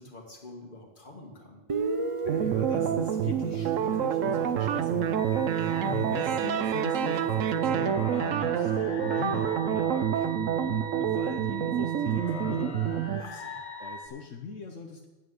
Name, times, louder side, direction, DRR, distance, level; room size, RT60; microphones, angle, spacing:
voice 1, 0.0-1.6 5.6-5.9 13.2-13.6, left 2 dB, 40° left, 1 dB, 2.1 m, -46 dB
Guitar, 1.7-5.2, right 3 dB, 35° right, 0.5 m, -35 dB
sound 1, 2.2-13.2, right 9 dB, 80° right, 1.1 m, -27 dB
voice 2, 2.3-13.1 13.8-15.1, left 5 dB, 75° left, 3 dB, 1.3 m, -40 dB
sound 2, 5.2-14.1, equal, 60° left, 2.1 m, -41 dB
9.5 x 8.0 x 7.8 m, 1.1 s
omnidirectional pair, 1.3 m